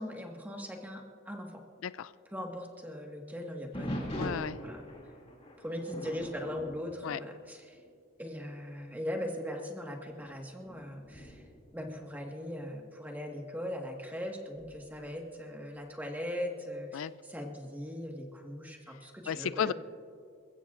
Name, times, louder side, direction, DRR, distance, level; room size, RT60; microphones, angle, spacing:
voice 1, 0.0-1.6 2.3-4.2 4.6-4.8 5.6-7.8 8.2-11.4 11.7-19.7, equal, 10° right, 1 dB, 1.6 m, -40 dB
voice 2, 1.8-2.1 4.1-4.6 7.0-7.2 16.9-17.2 19.3-19.7, left 8 dB, 90° left, 16 dB, 0.4 m, -33 dB
sound 1, 3.7-7.9 8.2-8.6 9.2-9.3 10.0-12.7 14.6-15.1, equal, 30° left, 2.6 m, -42 dB
27.5 x 15.5 x 2.5 m, 2.3 s
head